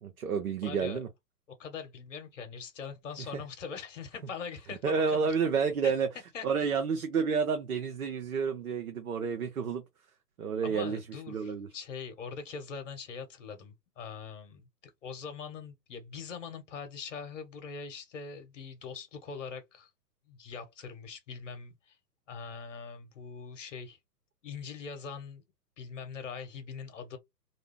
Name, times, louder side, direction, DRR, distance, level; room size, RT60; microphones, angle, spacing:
voice 1, 0.0-1.1 3.2-3.4 4.8-6.1 6.4-9.8 10.4-11.0 11.3-11.7, right 6 dB, 60° right, 0.7 m, -30 dB
voice 2, 0.6-1.0 1.6-5.2 5.8-5.9 6.3-6.5 10.6-14.7 15.0-19.9 20.3-22.0 22.3-24.0 24.4-25.4 25.8-27.2, left 6 dB, 50° left, 1.1 m, -42 dB
2.5 x 2.2 x 3.6 m
figure-of-eight pair, 120°, 49 cm